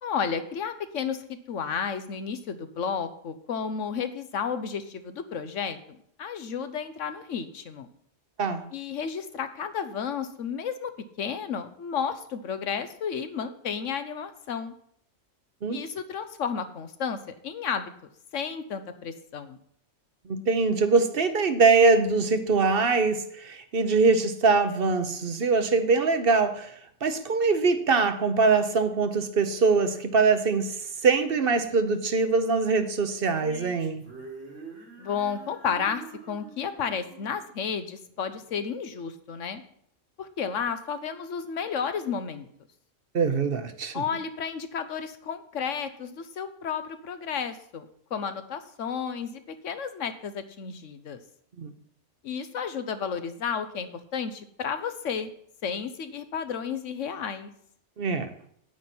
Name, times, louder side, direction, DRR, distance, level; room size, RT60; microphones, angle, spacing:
voice 1, 0.0-5.8 6.2-7.9 8.7-10.9 11.2-14.7 15.7-19.6 35.0-39.6 40.2-42.5 43.9-51.2 52.2-55.3 55.6-57.5, left 6 dB, 80° left, 10 dB, 1.2 m, -32 dB
voice 2, 20.3-26.7 27.0-34.0 43.1-44.0 51.6-51.7 58.0-58.3, right 4 dB, 50° right, 9 dB, 1.1 m, -23 dB
sound 1, 33.2-38.5, right 4 dB, 75° right, 3.2 m, -46 dB
9.3 x 9.2 x 4.4 m, 0.67 s
omnidirectional pair, 1.3 m